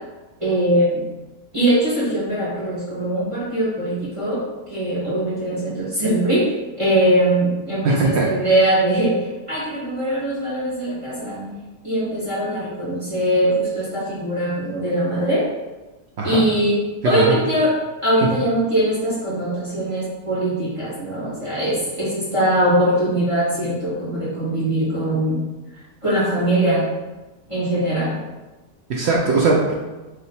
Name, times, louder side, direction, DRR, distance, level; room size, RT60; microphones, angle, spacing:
voice 1, 0.4-1.0 1.5-11.6 11.8-15.5 16.2-16.8 17.0-17.8 18.0-25.4 26.0-26.9 27.5-28.2, right 1 dB, 20° right, -10 dB, 1.5 m, -21 dB
voice 2, 7.8-8.3 16.2-16.4 17.0-17.3 28.9-29.7, right 3 dB, 60° right, -2 dB, 0.7 m, -19 dB
3.1 x 2.9 x 4.1 m, 1.1 s
omnidirectional pair, 1.6 m